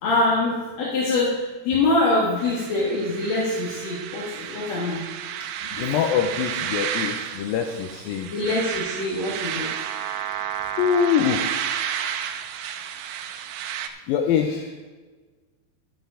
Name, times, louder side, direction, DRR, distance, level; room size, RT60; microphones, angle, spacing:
voice 1, 0.0-5.0 5.6-5.9 8.3-9.7 14.5-14.6, left 2 dB, 55° left, -5 dB, 2.3 m, -24 dB
sound 1, 2.4-13.9, right 9 dB, 80° right, 2.3 m, -31 dB
voice 2, 5.8-8.3 10.8-11.7 14.1-14.6, left 8 dB, 80° left, 4 dB, 2.2 m, -24 dB
11.5 x 7.9 x 5.0 m, 1.3 s
omnidirectional pair, 4.5 m